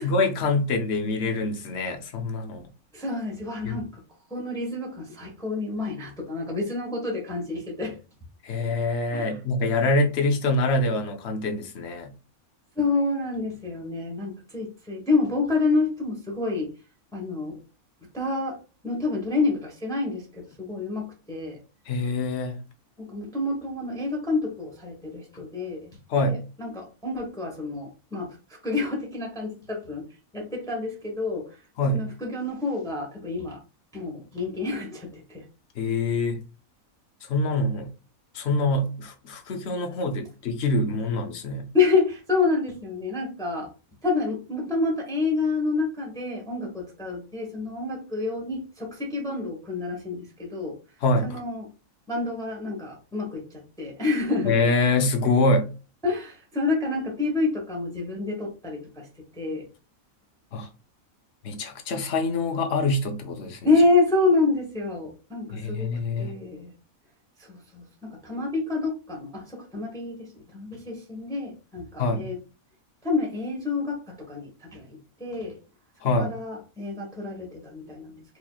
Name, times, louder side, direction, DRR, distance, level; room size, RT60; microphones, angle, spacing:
voice 1, 0.0-2.6 3.6-3.8 8.4-12.1 21.9-22.6 26.1-26.4 31.8-32.1 35.8-36.4 37.3-37.9 38.3-41.7 51.0-51.4 54.4-55.7 60.5-60.7 61.4-63.6 65.5-66.3 72.0-72.3 76.0-76.3, left 2 dB, 55° left, 1.0 m, -25 dB
voice 2, 2.9-4.0 4.3-8.0 9.1-9.4 12.7-16.7 17.1-17.6 18.1-18.6 18.8-21.6 23.0-25.9 26.2-30.0 30.3-31.6 31.9-33.6 33.9-35.4 41.7-43.7 44.0-50.8 51.2-51.7 52.1-54.6 56.0-59.1 59.3-59.7 63.6-65.9 66.2-66.7 67.4-72.4 73.0-75.6 76.2-78.2, left 3 dB, 5° left, 1.0 m, -28 dB
4.5 x 3.0 x 2.3 m
omnidirectional pair, 1.5 m